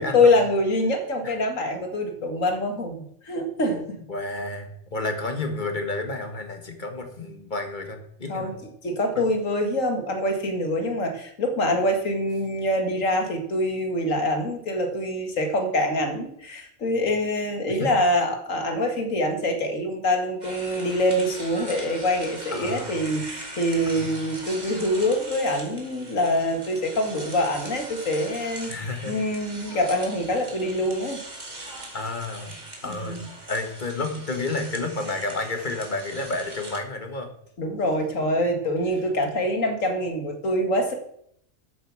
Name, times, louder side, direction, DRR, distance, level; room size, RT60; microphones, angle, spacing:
voice 1, 0.0-4.0 8.3-8.5 8.8-31.2 32.9-33.3 37.6-40.9, left 1 dB, 80° left, 4 dB, 2.3 m, -25 dB
voice 2, 4.1-8.5 9.1-9.3 17.8-17.9 22.5-22.9 23.9-24.1 28.7-29.1 31.9-32.6 32.8-33.2 33.5-37.3, left 2 dB, 35° left, 5 dB, 1.8 m, -31 dB
sound 1, 20.4-36.8, right 1 dB, 35° right, 2.1 m, -41 dB
13.0 x 7.9 x 4.9 m, 0.69 s
omnidirectional pair, 1.3 m